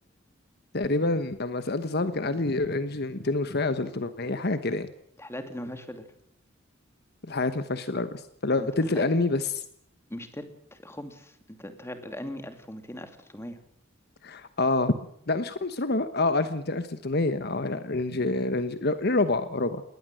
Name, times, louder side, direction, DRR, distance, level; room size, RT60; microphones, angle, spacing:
voice 1, 0.7-4.9 7.2-9.6 14.2-14.9 15.3-19.8, left 2 dB, 55° left, 11 dB, 1.2 m, -27 dB
voice 2, 5.2-6.1 8.6-9.1 10.1-13.6, left 1 dB, 15° left, 7 dB, 2.7 m, -39 dB
20.5 x 19.0 x 7.7 m, 0.72 s
head